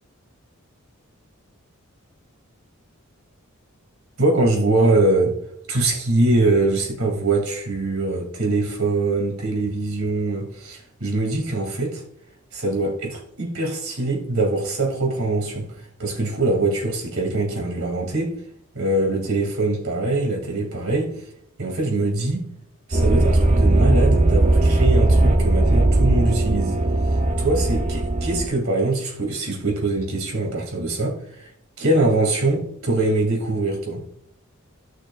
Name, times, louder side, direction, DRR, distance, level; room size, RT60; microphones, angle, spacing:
voice 1, 4.2-5.4 5.7-12.0 12.5-18.3 18.7-21.3 21.6-22.4 22.9-26.8 27.4-31.5 31.8-34.0, right 2 dB, 70° right, -1 dB, 2.6 m, -23 dB
sound 1, 22.9-28.5, right 2 dB, 35° right, 0.7 m, -18 dB
15.0 x 6.2 x 2.4 m, 0.71 s
head